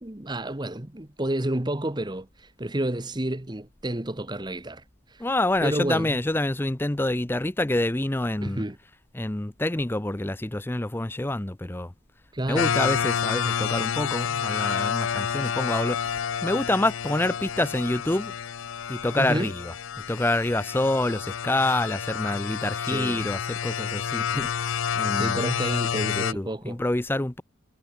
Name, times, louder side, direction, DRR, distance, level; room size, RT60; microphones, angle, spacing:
voice 1, 0.0-4.8 5.1-5.2 5.6-6.2 8.4-8.8 12.3-12.8 19.1-19.5 22.9-23.2 25.1-26.8, right 1 dB, 20° right, 1.1 m, -30 dB
voice 2, 5.2-8.6 9.1-11.9 12.5-16.1 16.4-18.3 18.9-19.7 20.1-25.4 26.0-27.4, left 1 dB, 10° left, 0.5 m, -27 dB
sound 1, 12.5-26.3, left 7 dB, 75° left, 0.5 m, -29 dB
head